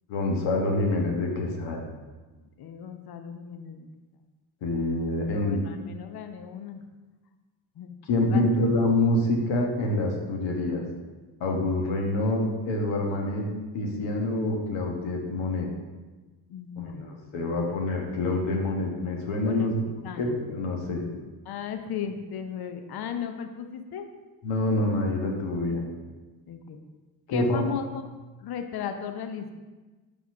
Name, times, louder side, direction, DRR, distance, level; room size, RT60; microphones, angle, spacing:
voice 1, 0.1-1.8 4.6-5.6 8.1-10.8 11.4-13.5 13.7-15.7 16.8-21.0 24.4-25.8 27.3-27.7, left 2 dB, 70° left, 1 dB, 1.5 m, -26 dB
voice 2, 2.6-3.9 5.0-6.8 7.8-7.9 8.3-8.5 16.5-17.7 19.5-19.7 20.0-20.4 21.4-24.1 26.5-26.8 27.3-28.0 28.4-29.5, left 7 dB, 50° left, 7 dB, 0.8 m, -36 dB
5.6 x 4.5 x 4.8 m, 1.2 s
hypercardioid pair, 55°, 49 cm